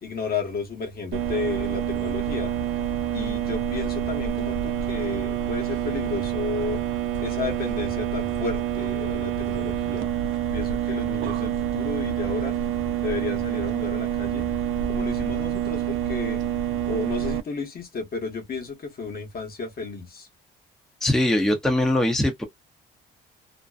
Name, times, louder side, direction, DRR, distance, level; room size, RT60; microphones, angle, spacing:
voice 1, 0.0-2.5 3.1-6.8 7.2-10.1 10.5-12.5 13.0-14.5 14.9-16.4 16.9-20.3, left 4 dB, 50° left, 1.1 m, -32 dB
sound 1, 1.1-17.4, right 10 dB, 85° right, 0.5 m, -27 dB
voice 2, 21.0-22.4, left 1 dB, 5° left, 0.7 m, -21 dB
2.5 x 2.1 x 2.4 m
cardioid pair, 90°, 20 cm